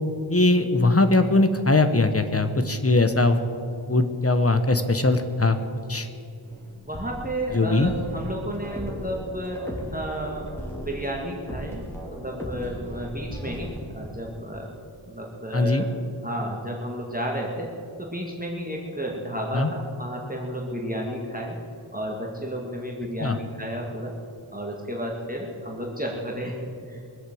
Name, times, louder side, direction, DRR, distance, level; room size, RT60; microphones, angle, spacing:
voice 1, 0.3-3.4 3.9-5.6 5.9-6.1 7.5-7.9 15.5-15.8 19.5-19.7 23.2-23.4, left 2 dB, 30° left, 9 dB, 1.2 m, -20 dB
sound 1, 6.4-13.8, equal, 5° left, 3.4 m, -37 dB
voice 2, 6.8-10.5 10.7-14.7 15.1-15.9 16.2-17.7 18.0-21.6 21.9-24.1 24.5-27.0, equal, 15° right, -2 dB, 1.8 m, -32 dB
21.5 x 8.2 x 7.9 m, 2.5 s
wide cardioid pair, 65°, 49 cm